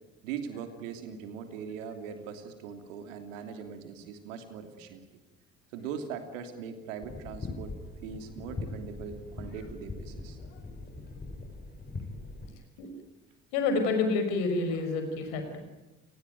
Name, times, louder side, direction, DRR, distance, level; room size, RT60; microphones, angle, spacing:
voice 1, 0.2-5.0 5.7-7.8 8.0-10.4, right 7 dB, 70° right, 8 dB, 3.0 m, -40 dB
sound 1, 7.0-12.5, left 3 dB, 25° left, 7.4 m, -41 dB
voice 2, 13.5-15.6, left 3 dB, 65° left, 6 dB, 5.4 m, -28 dB
28.5 x 20.0 x 9.2 m, 1.1 s
figure-of-eight pair, 50°, 39 cm